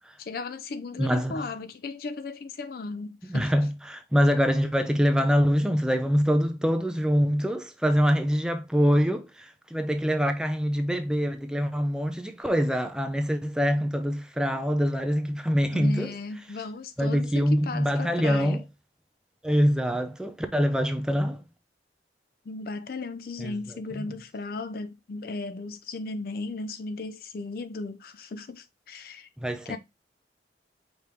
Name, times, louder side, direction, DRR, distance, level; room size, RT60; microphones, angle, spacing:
voice 1, 0.2-3.5 15.7-18.6 22.5-29.3 29.7-29.8, left 3 dB, 55° left, 0.4 m, -36 dB
voice 2, 1.0-1.4 3.3-16.1 17.0-18.6 19.4-21.4 23.4-23.5 29.4-29.8, equal, 5° right, 0.5 m, -24 dB
5.0 x 3.4 x 2.8 m
head